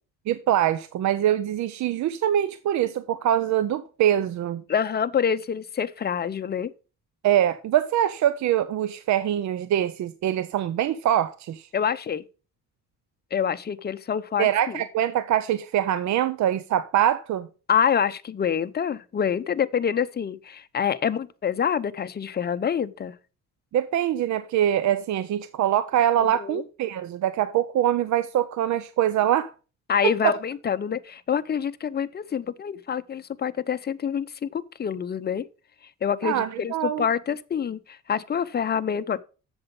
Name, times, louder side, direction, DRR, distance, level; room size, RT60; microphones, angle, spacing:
voice 1, 0.3-4.6 7.2-11.7 14.4-17.5 23.7-29.5 30.0-30.3 36.2-37.1, right 11 dB, 70° right, 0.6 m, -24 dB
voice 2, 4.7-6.7 11.7-12.2 13.3-14.8 17.7-23.2 26.2-26.6 29.9-35.4 36.0-39.2, left 7 dB, 35° left, 0.7 m, -26 dB
7.9 x 7.0 x 5.3 m
cardioid pair, 90°, 30 cm